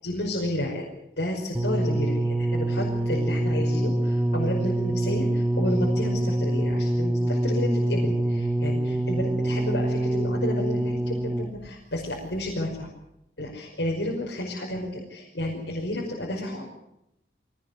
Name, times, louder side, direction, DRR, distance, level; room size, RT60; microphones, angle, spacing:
voice 1, 0.0-0.9 1.2-12.9 13.4-16.7, left 1 dB, 80° left, -2 dB, 5.5 m, -31 dB
sound 1, 1.5-11.7 12.5-12.6, right 1 dB, 10° right, 1.1 m, -25 dB
24.5 x 18.5 x 8.2 m, 0.81 s
head